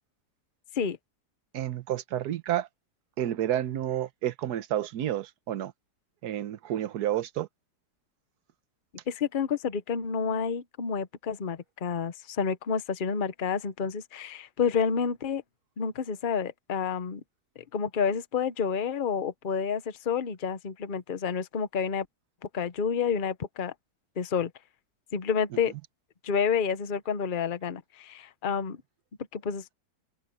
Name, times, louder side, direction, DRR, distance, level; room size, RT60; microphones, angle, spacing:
voice 1, 1.5-2.7 3.2-5.7 6.2-7.5, right 11 dB, 70° right, 1.4 m, -30 dB
voice 2, 9.1-15.4 15.8-17.2 17.6-22.1 22.5-23.7 24.2-24.5 25.1-25.7 26.2-28.8 29.3-29.7, left 6 dB, 35° left, 0.9 m, -29 dB
omnidirectional pair, 1.8 m